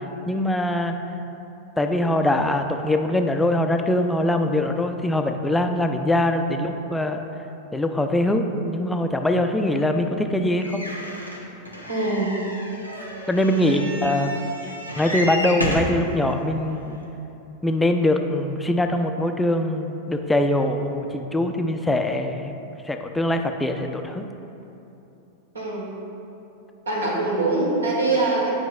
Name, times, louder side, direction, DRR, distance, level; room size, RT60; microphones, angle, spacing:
voice 1, 0.3-1.0 1.8-7.2 7.7-10.8 13.3-14.4 15.0-17.0 17.6-22.5 22.9-24.2, left 1 dB, 5° left, 5 dB, 0.4 m, -22 dB
sound 1, 10.6-16.0 16.7-16.8 17.0-17.1, equal, 90° right, 0.7 m, -31 dB
voice 2, 11.9-12.4 13.5-13.9 25.5-25.9 26.8-28.5, right 2 dB, 70° right, -3 dB, 1.2 m, -24 dB
9.0 x 5.2 x 2.3 m, 2.9 s
figure-of-eight pair, 90°, 0 cm